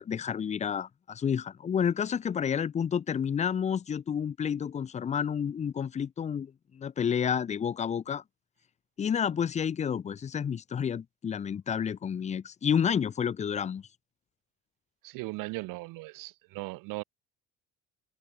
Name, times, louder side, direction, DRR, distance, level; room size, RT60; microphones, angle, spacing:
voice 1, 0.0-8.2 9.0-13.9, left 7 dB, 20° left, 0.5 m, -30 dB
voice 2, 15.0-17.0, right 23 dB, 75° right, 0.5 m, -38 dB
cardioid pair, 170°, 34 cm